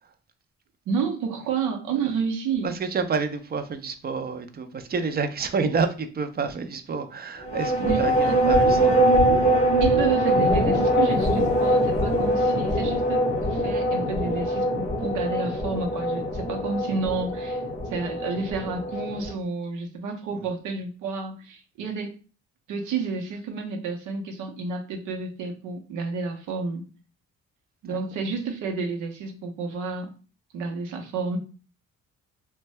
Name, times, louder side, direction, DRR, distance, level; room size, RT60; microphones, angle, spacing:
voice 1, 0.9-2.7 7.8-8.4 9.8-17.6 17.9-22.1 22.7-26.8 27.8-30.1 30.5-31.4, right 4 dB, 85° right, 0.7 m, -30 dB
voice 2, 2.6-9.0 27.9-28.0, right 5 dB, 30° right, 0.4 m, -29 dB
sound 1, 7.4-19.3, right 1 dB, 25° left, 0.8 m, -23 dB
2.6 x 2.2 x 3.1 m
cardioid pair, 90°, 30 cm